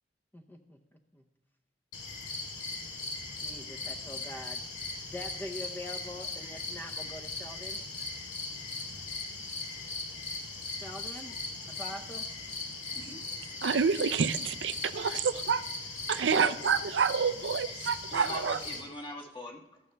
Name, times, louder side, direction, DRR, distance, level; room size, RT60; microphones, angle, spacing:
voice 1, 0.3-0.8 1.1-1.2 3.3-4.6 5.1-7.8 10.7-11.4 11.7-12.3 12.6-12.8 16.1-16.5, left 1 dB, 10° left, 5 dB, 0.7 m, -44 dB
sound 1, 1.9-18.8, left 3 dB, 85° left, 2.5 m, -39 dB
voice 2, 12.7-13.6 18.1-19.8, left 2 dB, 30° left, 2 dB, 1.5 m, -43 dB
voice 3, 13.6-15.6 16.1-18.6, right 6 dB, 85° right, 12 dB, 0.5 m, -28 dB
13.5 x 11.5 x 3.4 m, 0.87 s
head